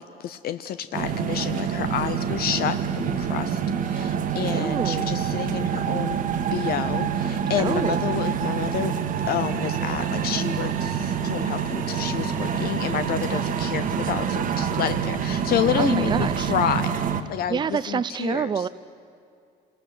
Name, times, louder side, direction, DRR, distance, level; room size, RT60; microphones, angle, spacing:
voice 1, 0.0-6.2 6.5-8.9 9.3-17.0 17.3-18.7, left 10 dB, 65° left, 11 dB, 0.7 m, -29 dB
sound 1, 0.9-17.2, right 7 dB, 55° right, 1.5 m, -26 dB
voice 2, 4.5-5.1 7.6-8.0 15.7-16.5 17.5-18.7, right 6 dB, 25° right, 14 dB, 0.5 m, -27 dB
28.0 x 19.0 x 7.8 m, 2.4 s
cardioid pair, 110°, 17 cm